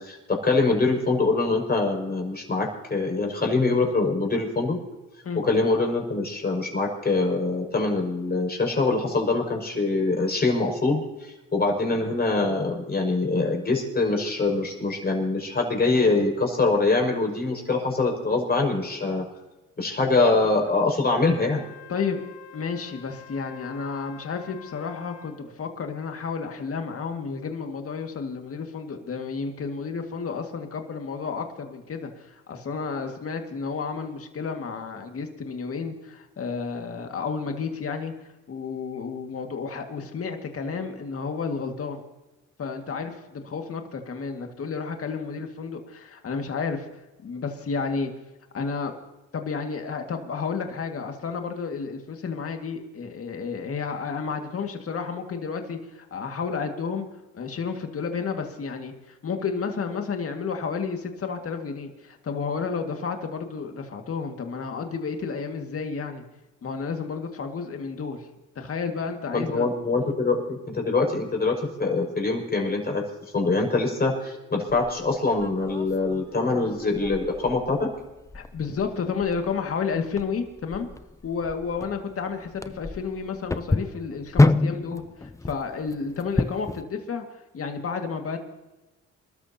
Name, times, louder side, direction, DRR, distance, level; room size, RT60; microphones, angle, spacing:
voice 1, 0.0-4.8 5.3-19.2 19.8-21.6 69.3-73.0 73.3-77.9, left 3 dB, 30° left, 1 dB, 5.9 m, -24 dB
Wind instrument woodwind instrument, 21.1-25.5, left 9 dB, 75° left, 2.8 m, -47 dB
voice 2, 21.9-22.2 22.5-38.1 38.5-42.0 42.6-46.9 47.2-48.1 48.5-48.9 49.3-57.1 57.3-66.2 66.6-68.3 68.6-69.7 70.0-70.2 78.3-80.9 81.2-88.4, left 5 dB, 50° left, 4 dB, 2.1 m, -31 dB
sound 1, 74.7-86.8, left 2 dB, 10° left, 0.6 m, -29 dB
27.0 x 13.0 x 2.9 m, 1.0 s
cardioid pair, 90°, 30 cm